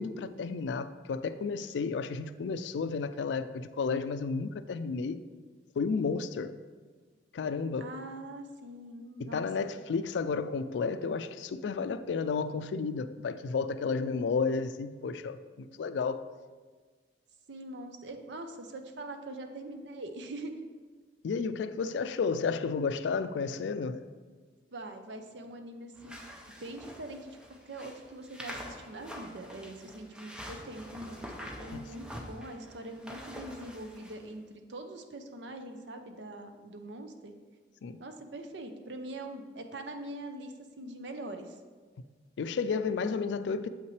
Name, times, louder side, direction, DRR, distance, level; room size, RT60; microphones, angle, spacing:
voice 1, 0.0-5.2 5.8-6.5 7.3-7.9 9.2-16.2 21.2-24.0 31.7-31.9 37.8-38.0 42.4-43.7, left 5 dB, 85° left, 0.3 m, -32 dB
voice 2, 7.8-9.7 13.8-14.0 17.5-20.7 24.7-26.2 26.6-27.4 27.6-37.3 38.0-41.6, right 1 dB, 85° right, 0.7 m, -43 dB
sound 1, 26.0-34.2, equal, 5° right, 0.6 m, -46 dB
7.3 x 5.7 x 3.2 m
head